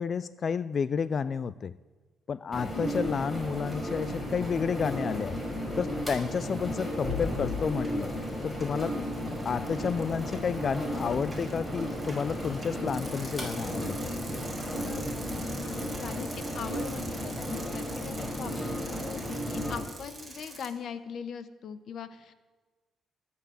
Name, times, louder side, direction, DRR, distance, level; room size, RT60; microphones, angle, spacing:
voice 1, 0.0-1.7 2.3-5.4 5.8-8.1 8.4-8.9 9.5-13.9, left 6 dB, 45° left, 17 dB, 0.4 m, -31 dB
sound 1, 2.5-19.8, equal, 15° left, 5.2 m, -34 dB
Bicycle, 6.3-6.6 6.9-20.7, right 2 dB, 15° right, 3.5 m, -46 dB
voice 2, 14.7-15.1 15.4-22.3, left 7 dB, 65° left, 12 dB, 1.1 m, -41 dB
19.0 x 8.3 x 8.0 m, 1.3 s
cardioid pair, 90°, 0 cm